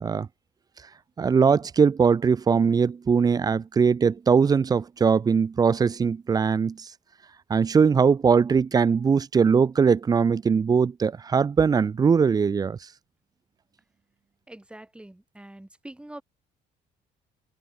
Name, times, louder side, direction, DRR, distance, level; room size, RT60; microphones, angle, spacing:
voice 1, 1.2-6.9 7.5-12.8, right 6 dB, 20° right, 0.4 m, -21 dB
voice 2, 14.5-16.2, right 1 dB, 5° right, 4.6 m, -44 dB
cardioid pair, 110°, 17 cm